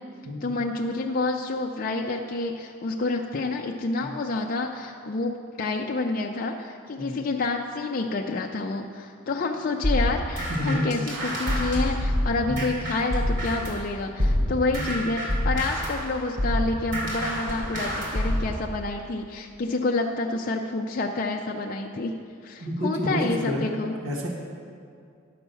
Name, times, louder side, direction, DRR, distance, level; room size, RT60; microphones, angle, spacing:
voice 1, 0.4-23.9, left 3 dB, 40° left, 1 dB, 0.4 m, -28 dB
sound 1, 9.8-13.8 14.2-18.6, equal, 55° right, 3.0 m, -27 dB
voice 2, 14.7-15.0 22.6-23.6 24.0-24.3, equal, 85° right, -2 dB, 1.7 m, -29 dB
10.0 x 5.8 x 6.9 m, 2.4 s
head